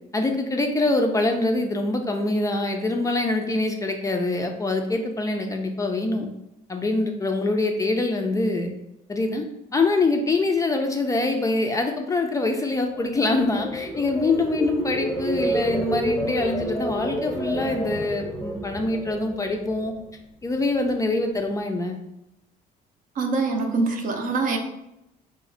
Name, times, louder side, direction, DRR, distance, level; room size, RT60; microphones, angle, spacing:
voice 1, 0.1-6.3 6.7-8.7 9.1-9.4 9.7-19.9 20.4-22.0, left 2 dB, 20° left, 3 dB, 0.3 m, -24 dB
sound 1, 12.9-20.1 20.5-20.9, right 1 dB, ahead, 0.8 m, -30 dB
voice 2, 23.2-24.6, right 3 dB, 50° right, 3 dB, 0.6 m, -24 dB
3.1 x 2.1 x 3.8 m, 0.87 s
cardioid pair, 110°, 17 cm